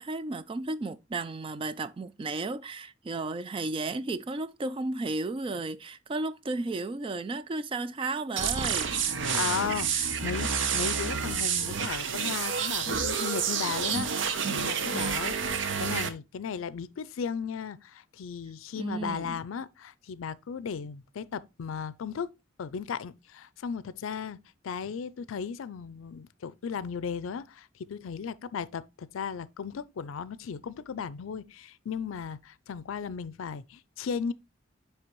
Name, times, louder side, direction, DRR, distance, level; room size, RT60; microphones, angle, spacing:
voice 1, 0.0-8.9 18.8-19.4, right 3 dB, 25° right, 0.3 m, -33 dB
sound 1, 8.4-16.1, right 6 dB, 65° right, 0.7 m, -29 dB
voice 2, 9.0-15.4 15.8-22.3 22.6-34.3, left 6 dB, 85° left, 0.4 m, -36 dB
9.5 x 3.3 x 3.0 m
head